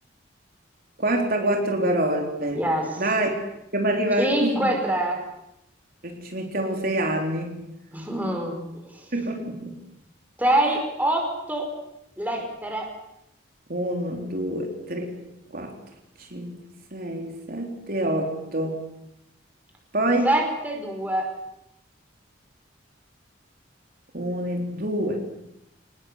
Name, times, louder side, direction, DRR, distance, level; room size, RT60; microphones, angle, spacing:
voice 1, 1.0-2.6 3.0-3.3 3.7-4.7 6.0-7.6 9.1-9.8 13.7-15.1 15.5-15.7 16.2-16.5 16.9-18.8 19.9-20.3 24.1-25.2, right 1 dB, 50° right, 2 dB, 3.9 m, -26 dB
voice 2, 2.5-3.0 4.2-5.2 7.9-8.6 8.8-9.0 10.4-11.7 12.2-12.9 20.2-21.3, right 1 dB, 10° right, 2 dB, 5.1 m, -25 dB
27.0 x 20.0 x 8.2 m, 0.84 s
head